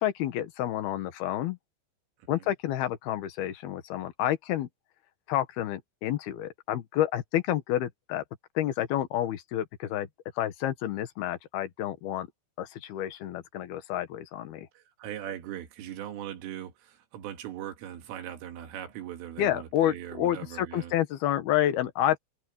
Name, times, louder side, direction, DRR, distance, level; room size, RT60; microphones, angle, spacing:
voice 1, 0.0-1.6 2.3-4.7 5.3-8.2 8.6-10.1 10.4-12.3 12.6-14.7 19.4-22.2, left 12 dB, 65° left, 2.9 m, -29 dB
voice 2, 14.7-20.9, right 11 dB, 90° right, 4.7 m, -40 dB
omnidirectional pair, 5.6 m